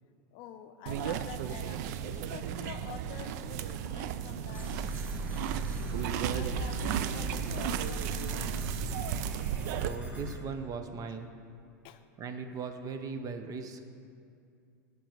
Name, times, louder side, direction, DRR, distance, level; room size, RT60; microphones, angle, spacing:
voice 1, 0.3-4.8 5.1-5.2 6.3-9.1 11.8-12.0, left 10 dB, 55° left, 10 dB, 0.5 m, -48 dB
sound 1, 0.9-9.9, right 9 dB, 65° right, 0.5 m, -34 dB
sound 2, 4.5-10.4, right 1 dB, 20° right, 1.6 m, -38 dB
voice 2, 9.8-11.3 12.2-13.8, right 5 dB, 40° right, 7 dB, 0.8 m, -38 dB
15.0 x 5.4 x 4.7 m, 2.4 s
hypercardioid pair, 100°, 10 cm